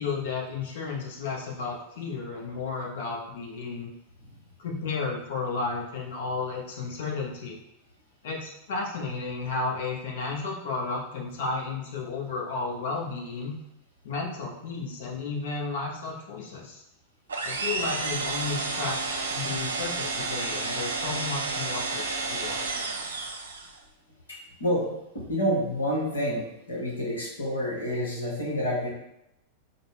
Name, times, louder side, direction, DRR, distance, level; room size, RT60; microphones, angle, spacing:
voice 1, 0.0-3.9 4.6-7.6 8.2-13.5 14.0-16.8 17.4-22.6, left 4 dB, 55° left, -1 dB, 0.8 m, -33 dB
sound 1, 17.3-23.8, right 3 dB, 70° right, 0.4 m, -31 dB
voice 2, 24.3-24.9 25.1-28.9, equal, 75° left, -3 dB, 1.1 m, -28 dB
4.1 x 2.1 x 3.4 m, 0.85 s
figure-of-eight pair, 90°, 0 cm